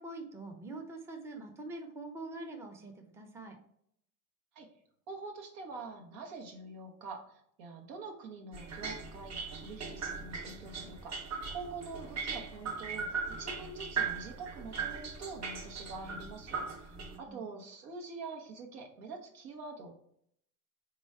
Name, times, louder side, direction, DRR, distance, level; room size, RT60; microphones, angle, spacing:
voice 1, 0.0-3.6 16.9-17.4, right 2 dB, 5° right, 3 dB, 0.6 m, -45 dB
voice 2, 5.1-19.9, right 4 dB, 70° right, 2 dB, 1.3 m, -45 dB
sound 1, 8.5-17.2, right 5 dB, 35° right, 0.9 m, -39 dB
3.8 x 3.0 x 4.4 m, 0.70 s
hypercardioid pair, 85°, 48 cm